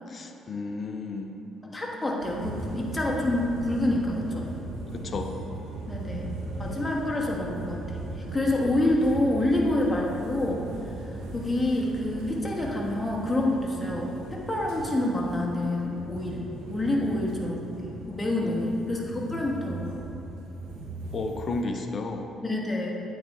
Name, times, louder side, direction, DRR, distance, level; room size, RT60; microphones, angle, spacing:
voice 1, 0.1-1.4 4.9-5.3 17.0-17.2 18.4-18.7 21.1-22.3, left 3 dB, 50° left, 5 dB, 0.6 m, -33 dB
voice 2, 1.6-4.4 5.9-8.0 8.3-10.6 11.3-20.1 22.4-22.9, left 1 dB, 20° left, -2 dB, 1.3 m, -27 dB
sound 1, 2.2-21.6, right 2 dB, 85° right, 0.8 m, -38 dB
8.5 x 4.2 x 3.5 m, 2.9 s
supercardioid pair, 60°, 0 cm